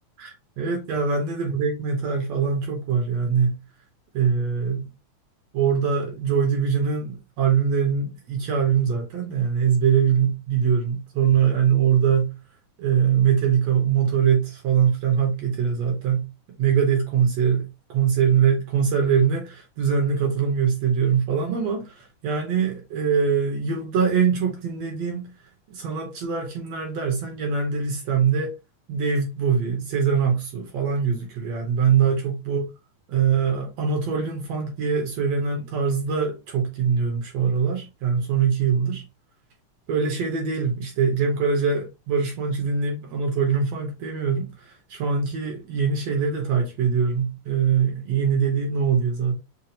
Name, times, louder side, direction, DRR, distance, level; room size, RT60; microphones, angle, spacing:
voice 1, 0.2-3.6 4.1-4.9 5.5-12.4 12.8-16.3 16.6-25.3 25.7-28.5 28.9-32.6 33.1-39.0 39.9-49.4, right 6 dB, 70° right, 1.7 m, -23 dB
5.9 x 2.3 x 2.7 m
omnidirectional pair, 3.7 m